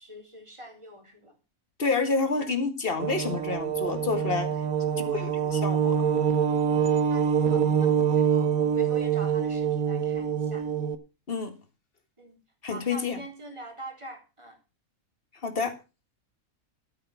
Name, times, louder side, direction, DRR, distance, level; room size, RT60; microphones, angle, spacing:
voice 1, 0.0-1.3 7.1-10.7 12.2-12.4 12.6-14.6, right 1 dB, 20° right, 3.5 m, -45 dB
voice 2, 1.8-4.5 5.1-6.0 11.3-11.6 12.6-13.2 15.4-15.7, left 4 dB, 40° left, 2.1 m, -28 dB
sound 1, 3.0-11.0, right 7 dB, 80° right, 1.5 m, -25 dB
12.5 x 9.2 x 5.8 m
omnidirectional pair, 1.5 m